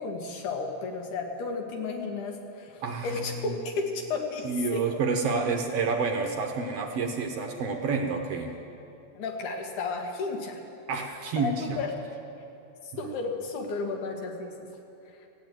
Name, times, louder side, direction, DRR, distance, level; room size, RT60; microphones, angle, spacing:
voice 1, 0.0-4.8 9.1-10.6 11.4-11.9 13.0-14.5, left 4 dB, 85° left, 2 dB, 2.9 m, -33 dB
voice 2, 2.8-3.5 4.4-8.5 10.9-11.8 12.9-13.1, right 4 dB, 70° right, 3 dB, 1.6 m, -29 dB
15.0 x 8.5 x 9.2 m, 2.8 s
omnidirectional pair, 3.4 m